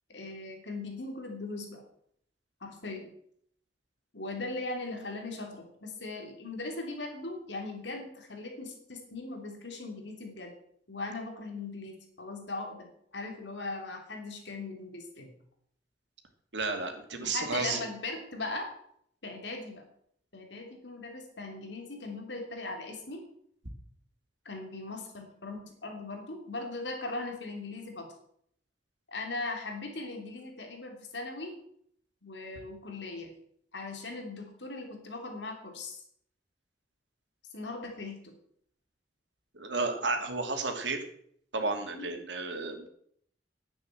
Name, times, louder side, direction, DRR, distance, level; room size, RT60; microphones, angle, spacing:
voice 1, 0.1-1.8 2.6-3.1 4.1-10.5 10.9-15.3 17.2-18.7 19.2-19.8 20.3-23.2 24.4-28.1 29.1-31.5 32.2-33.3 33.7-36.0 37.5-38.3 42.0-42.1, left 2 dB, 85° left, 3 dB, 3.2 m, -39 dB
voice 2, 16.5-17.8 39.5-41.0 41.5-42.9, right 3 dB, 85° right, 4 dB, 2.5 m, -32 dB
11.0 x 9.0 x 7.7 m, 0.66 s
head